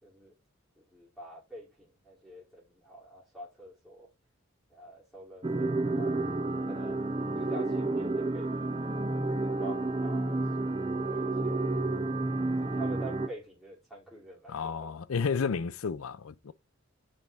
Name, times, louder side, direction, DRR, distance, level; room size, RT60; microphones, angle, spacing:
voice 1, 0.0-0.3 0.8-4.1 4.7-6.2 6.6-7.1 7.4-8.5 9.0-12.2 12.6-14.9, right 2 dB, ahead, 3.0 m, -47 dB
sound 1, 5.4-13.3, right 2 dB, 25° right, 0.6 m, -30 dB
voice 2, 14.5-16.5, left 5 dB, 80° left, 0.5 m, -32 dB
7.5 x 4.5 x 3.5 m
head